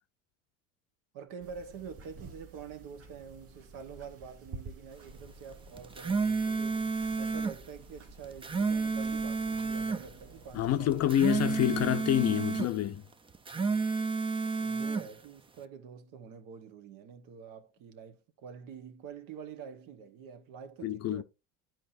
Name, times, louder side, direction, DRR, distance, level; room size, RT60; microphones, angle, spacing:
voice 1, 1.1-11.1 13.5-13.8 14.6-21.2, right 6 dB, 55° right, 1.2 m, -47 dB
sound 1, 1.4-11.9, right 3 dB, 35° right, 1.2 m, -51 dB
sound 2, 5.8-7.6 8.2-10.0 10.9-12.7 13.3-15.1, right 4 dB, 15° right, 0.5 m, -31 dB
voice 2, 10.5-13.0 20.8-21.2, left 12 dB, 40° left, 0.6 m, -27 dB
10.5 x 4.5 x 2.6 m
hypercardioid pair, 75°, 39 cm